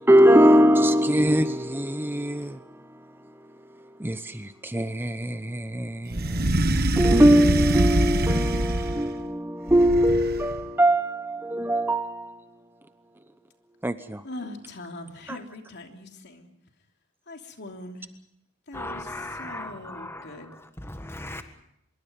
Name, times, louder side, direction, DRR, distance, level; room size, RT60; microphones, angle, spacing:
voice 1, 0.0-6.6 7.0-12.5 13.8-14.2 15.3-15.4, equal, 10° right, 0.8 m, -22 dB
sound 1, 6.1-9.1 9.7-10.6, right 1 dB, 50° right, 1.4 m, -24 dB
voice 2, 14.2-16.5 17.3-18.1 18.7-19.1 19.4-20.5, left 2 dB, 55° left, 3.1 m, -41 dB
voice 3, 18.7-21.4, left 1 dB, 10° left, 1.5 m, -38 dB
25.0 x 23.0 x 5.2 m
head